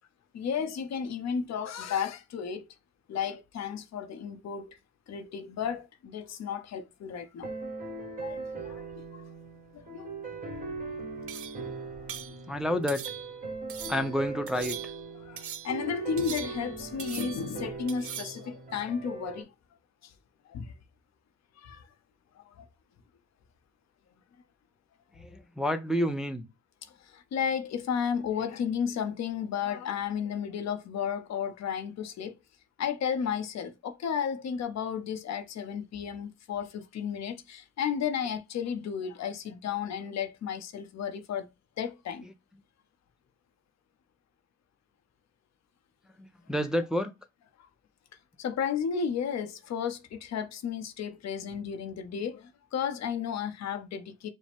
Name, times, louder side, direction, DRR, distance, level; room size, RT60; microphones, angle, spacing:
voice 1, 0.3-2.7 3.1-4.8 5.1-7.5 8.2-9.2 9.7-10.1 13.8-13.9 15.1-19.5 20.0-20.1 20.5-20.7 21.6-21.9 22.4-22.6 26.8-32.3 32.8-41.5 41.8-42.3 48.4-54.3, left 7 dB, 60° left, 0.7 m, -33 dB
sound 1, 7.4-19.4, right 4 dB, 25° right, 1.5 m, -39 dB
sound 2, 11.3-11.7 12.1-12.4 12.9-13.4 13.7-14.1 14.5-15.1 15.4-15.8 16.2-16.7 17.0-17.5 17.9-18.4, right 8 dB, 50° right, 0.7 m, -41 dB
voice 2, 12.5-13.0 13.9-14.8 25.2-25.3 25.6-26.4 46.2-47.1, equal, ahead, 0.4 m, -29 dB
5.0 x 2.1 x 3.4 m
cardioid pair, 90°, 30 cm